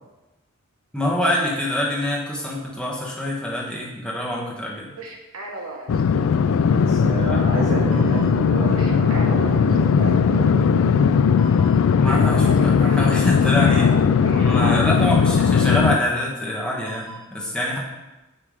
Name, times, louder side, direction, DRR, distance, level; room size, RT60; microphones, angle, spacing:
voice 1, 0.9-4.9 7.2-7.4 12.0-14.0 14.4-17.8, left 1 dB, 5° left, -4 dB, 1.3 m, -25 dB
sound 1, 5.0-6.0 7.9-9.8 11.0-11.1 11.4-11.8 12.1-13.1 13.4-14.6 16.9-17.2, right 2 dB, 85° right, 1.1 m, -35 dB
sound 2, 5.9-16.0, left 6 dB, 70° left, 0.3 m, -18 dB
voice 2, 6.7-11.1 13.9-14.0 14.6-14.8, right 1 dB, 50° right, -6 dB, 2.6 m, -29 dB
8.9 x 3.4 x 4.9 m, 1.0 s
head